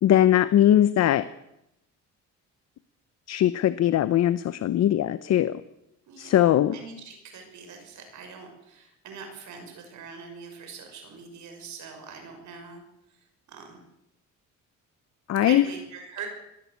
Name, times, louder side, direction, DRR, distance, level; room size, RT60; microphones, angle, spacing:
voice 1, 0.0-1.3 3.3-5.6 6.2-6.8 15.3-15.7, left 11 dB, 55° left, 14 dB, 0.8 m, -20 dB
voice 2, 6.0-6.5 6.7-12.8 13.5-13.8 15.4-16.3, right 5 dB, 65° right, 4 dB, 5.9 m, -42 dB
21.5 x 16.0 x 8.4 m, 0.84 s
cardioid pair, 145°, 32 cm